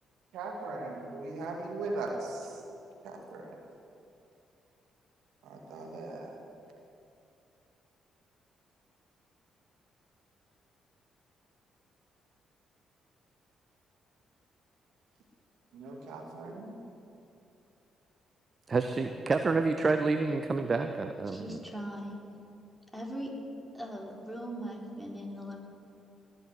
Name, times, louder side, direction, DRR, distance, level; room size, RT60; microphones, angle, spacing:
voice 1, 0.3-2.5 3.0-3.5 5.4-6.3 15.7-16.8, right 2 dB, 65° right, 1 dB, 2.3 m, -39 dB
voice 2, 18.7-21.6, right 3 dB, 40° right, 8 dB, 0.8 m, -28 dB
voice 3, 21.3-22.2 22.9-23.3 23.7-25.6, equal, ahead, -1 dB, 4.1 m, -40 dB
20.0 x 6.8 x 9.8 m, 2.6 s
hypercardioid pair, 40°, 0 cm